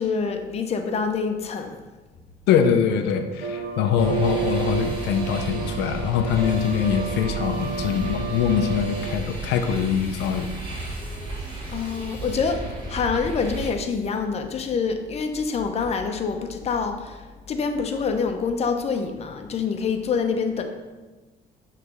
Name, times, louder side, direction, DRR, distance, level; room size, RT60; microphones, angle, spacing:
voice 1, 0.0-1.8 11.7-20.6, left 5 dB, 40° left, 5 dB, 0.7 m, -26 dB
voice 2, 2.5-10.5, left 7 dB, 85° left, 6 dB, 0.5 m, -23 dB
sound 1, 3.4-9.1, right 5 dB, 65° right, 1.1 m, -31 dB
sound 2, 4.0-13.7, right 2 dB, 30° right, 2.0 m, -34 dB
6.5 x 3.3 x 5.3 m, 1.2 s
cardioid pair, 110°, 17 cm